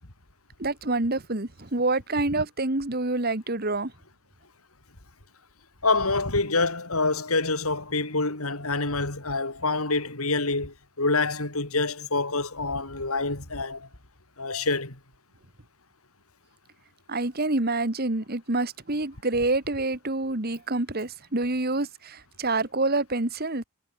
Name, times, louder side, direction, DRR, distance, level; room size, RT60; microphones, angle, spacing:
voice 1, 0.6-3.9 17.1-23.6, right 2 dB, 45° right, 1.9 m, -27 dB
voice 2, 5.8-13.9 14.4-15.0, left 3 dB, 75° left, 4.3 m, -26 dB
head